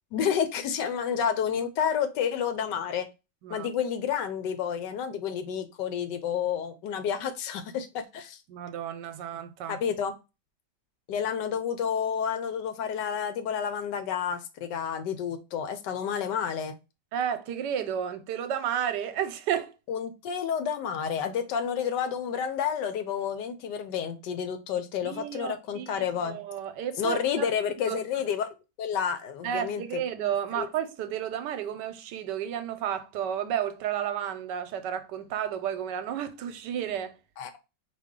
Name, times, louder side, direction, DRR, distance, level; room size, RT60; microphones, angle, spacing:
voice 1, 0.1-3.1 3.5-8.4 9.7-10.1 11.1-16.7 19.9-26.4 27.0-28.5 28.8-30.0 30.5-30.7 37.4-37.5, left 8 dB, 85° left, 1.3 m, -30 dB
voice 2, 8.5-9.8 17.1-19.7 25.0-27.5 27.9-28.0 29.4-37.1, right 9 dB, 85° right, 1.2 m, -32 dB
4.2 x 2.9 x 3.6 m
omnidirectional pair, 1.9 m